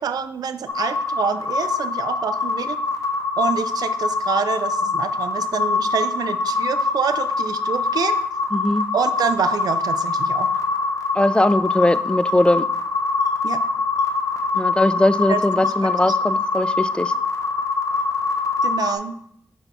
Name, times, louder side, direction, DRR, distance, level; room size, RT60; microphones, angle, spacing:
voice 1, 0.0-2.8 3.4-8.2 8.9-10.6 13.4-13.6 15.3-16.1 18.6-19.2, right 7 dB, 90° right, 11 dB, 0.4 m, -27 dB
sound 1, 0.7-19.0, left 3 dB, 60° left, 1.1 m, -24 dB
voice 2, 8.5-8.9 11.2-12.7 14.5-17.1, left 1 dB, 15° left, 15 dB, 0.3 m, -20 dB
6.0 x 5.5 x 3.4 m, 0.69 s
cardioid pair, 50°, 6 cm